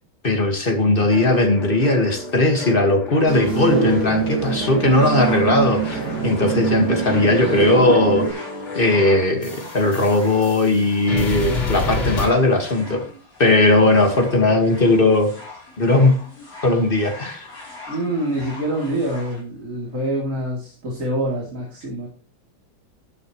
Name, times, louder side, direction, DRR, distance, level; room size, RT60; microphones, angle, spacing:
voice 1, 0.2-8.4 8.7-13.0 13.4-15.3 15.8-16.1 16.6-17.5, left 2 dB, 25° left, 4 dB, 2.0 m, -18 dB
sound 1, 1.1-10.8 11.1-12.3, left 2 dB, 85° left, 3.9 m, -30 dB
sound 2, 3.3-8.3, right 5 dB, 55° right, 7.2 m, -24 dB
sound 3, 4.8-19.4 20.3-20.4, left 3 dB, 50° left, 7.0 m, -41 dB
voice 2, 17.9-22.1, right 1 dB, 40° right, -3 dB, 3.5 m, -25 dB
15.0 x 10.5 x 3.2 m, 0.39 s
omnidirectional pair, 2.2 m